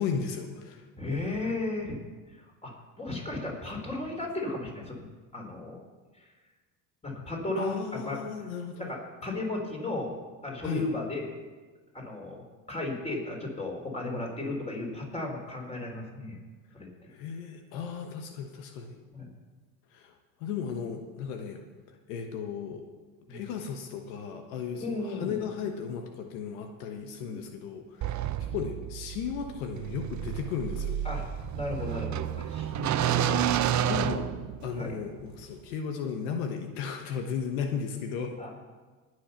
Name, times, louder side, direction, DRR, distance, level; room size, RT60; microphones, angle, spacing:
voice 1, 0.0-0.8 1.4-1.5 7.6-8.9 10.6-10.9 17.1-19.0 19.9-20.1 20.4-21.6 21.9-22.8 23.3-31.0 33.9-34.3 34.6-38.3, left 6 dB, 80° left, 5 dB, 1.2 m, -35 dB
voice 2, 1.0-2.0 2.6-2.7 3.0-5.1 5.3-5.8 6.2-6.3 7.0-8.3 8.8-11.4 11.9-16.4 16.7-16.9 19.1-19.3 23.3-23.4 24.8-25.4 27.3-27.4 28.5-28.6 31.0-31.2 31.5-33.3 34.8-35.0 38.4-38.5, left 2 dB, 15° left, 0 dB, 4.2 m, -35 dB
sound 1, 28.0-34.9, right 10 dB, 45° right, 0.8 m, -30 dB
19.0 x 6.5 x 5.7 m, 1.3 s
supercardioid pair, 80°, 42 cm